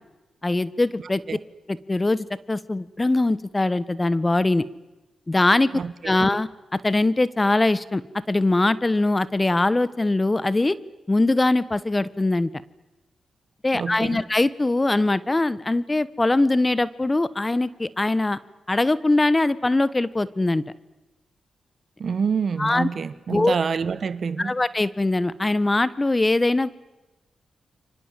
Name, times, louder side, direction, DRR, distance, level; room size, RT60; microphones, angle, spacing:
voice 1, 0.4-1.2 1.7-4.6 5.3-5.7 6.0-6.5 6.8-8.0 8.3-10.8 11.1-12.5 13.6-18.4 18.7-20.6 22.6-22.9 23.3-23.5 24.4-26.7, left 2 dB, 25° left, 1.4 m, -22 dB
voice 2, 13.7-14.2 22.0-24.5, right 6 dB, 60° right, 1.4 m, -27 dB
29.5 x 25.0 x 7.6 m
supercardioid pair, 45°, 0 cm